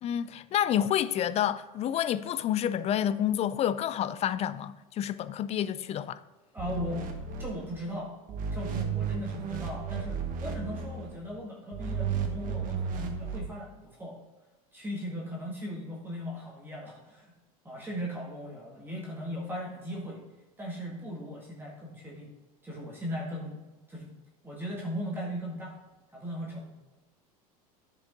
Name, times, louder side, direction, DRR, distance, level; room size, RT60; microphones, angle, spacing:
voice 1, 0.0-6.2, left 10 dB, 35° left, 0.4 m, -29 dB
voice 2, 6.5-7.1 7.4-8.1 8.5-14.2 14.7-17.3 17.6-20.2 20.6-22.3 22.6-23.6 23.9-24.1 24.4-25.8 26.1-26.7, equal, 10° right, 1.8 m, -38 dB
sound 1, 6.6-8.0 8.3-11.2 11.7-13.4, right 6 dB, 45° right, 1.2 m, -34 dB
10.0 x 5.3 x 3.8 m
hypercardioid pair, 95°, 19 cm